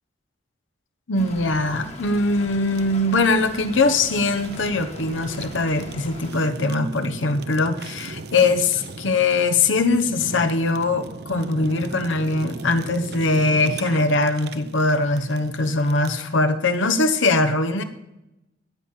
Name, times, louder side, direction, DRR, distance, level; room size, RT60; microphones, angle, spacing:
voice 1, 1.1-17.8, left 3 dB, 85° left, 8 dB, 0.9 m, -21 dB
Stream / Trickle dribble, 1.1-6.3, left 2 dB, 35° left, 1.3 m, -42 dB
Fire, 1.2-16.3, right 3 dB, 55° right, 0.7 m, -38 dB
13.5 x 8.7 x 5.8 m, 0.94 s
head